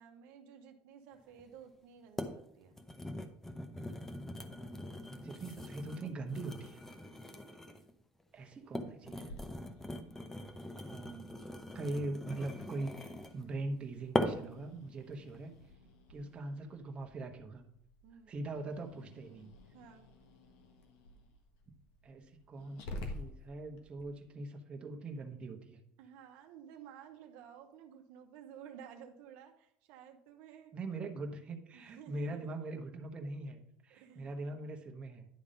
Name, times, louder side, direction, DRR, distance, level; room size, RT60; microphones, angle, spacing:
voice 1, 0.0-2.8 7.0-7.2 16.2-16.5 18.0-18.3 19.7-20.1 26.0-30.7 31.7-32.5 33.9-34.4, right 8 dB, 75° right, 5 dB, 0.9 m, -54 dB
sound 1, 1.4-1.5 2.2-2.4 2.7-7.9 8.5-13.4 14.1-14.6 15.1-15.4, left 1 dB, 10° left, 0.8 m, -41 dB
voice 2, 4.5-6.8 8.3-9.4 10.8-11.3 11.6-15.5 16.1-17.7 18.3-19.5 22.0-25.8 30.7-35.3, right 2 dB, 30° right, 3 dB, 1.1 m, -42 dB
Growling, 9.3-24.0, left 2 dB, 75° left, 1.3 m, -52 dB
10.5 x 3.6 x 5.3 m, 0.72 s
supercardioid pair, 105°, 4 cm